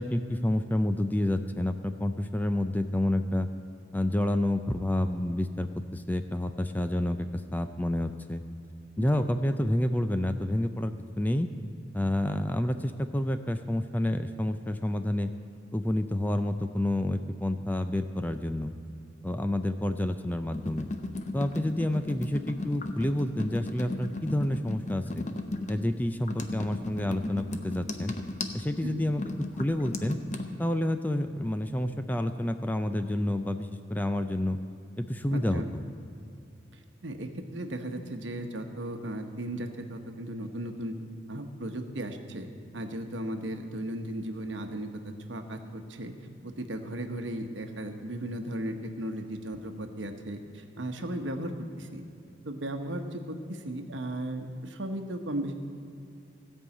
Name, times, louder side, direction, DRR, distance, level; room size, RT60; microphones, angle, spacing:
voice 1, 0.0-3.5 3.9-8.4 9.0-11.5 11.9-15.3 15.7-18.7 19.2-20.9 21.3-25.3 25.7-28.1 28.5-30.2 30.6-34.6 35.0-35.8, left 1 dB, 10° left, 8 dB, 0.4 m, -29 dB
sound 1, 20.5-30.5, left 2 dB, 40° left, 0.7 m, -36 dB
voice 2, 35.3-35.7 37.0-40.9 41.3-46.1 46.4-52.0 52.4-55.5, right 1 dB, 80° right, 6 dB, 1.0 m, -36 dB
16.5 x 5.5 x 8.3 m, 2.6 s
head